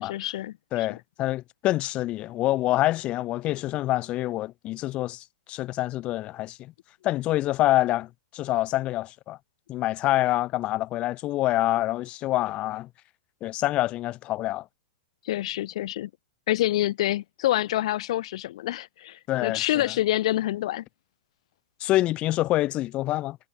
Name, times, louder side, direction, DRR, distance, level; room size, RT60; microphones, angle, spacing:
voice 1, 0.0-0.9 15.2-16.1 16.5-20.8, left 14 dB, 65° left, 1.3 m, -27 dB
voice 2, 0.7-6.6 7.0-8.1 8.3-9.4 9.7-12.9 13.4-14.6 19.3-19.6 21.8-23.4, left 16 dB, 30° left, 3.0 m, -26 dB
hypercardioid pair, 140°, 4 cm